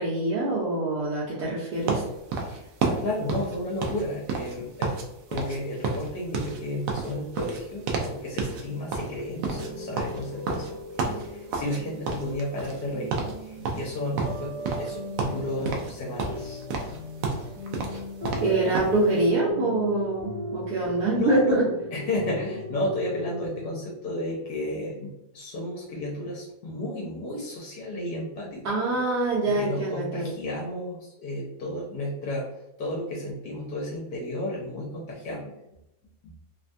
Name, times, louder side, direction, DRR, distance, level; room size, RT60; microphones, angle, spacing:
voice 1, 0.0-2.0 18.4-21.7 28.6-30.3, right 2 dB, 70° right, -8 dB, 1.2 m, -25 dB
sound 1, 1.9-5.1 5.3-5.6 5.8-8.1 8.4-8.6 8.9-11.8 12.1-12.9 13.1-13.4 13.6-14.9 15.2-15.9 16.2-19.0, right 4 dB, 90° right, 0.7 m, -30 dB
voice 2, 2.4-4.9 5.3-16.6 20.7-21.6 21.9-29.0 29.4-32.5 32.8-35.5, left 1 dB, 70° left, -4 dB, 1.1 m, -33 dB
sound 2, 9.4-23.9, left 1 dB, 40° right, 0.7 m, -38 dB
3.2 x 2.2 x 2.5 m, 0.90 s
omnidirectional pair, 2.0 m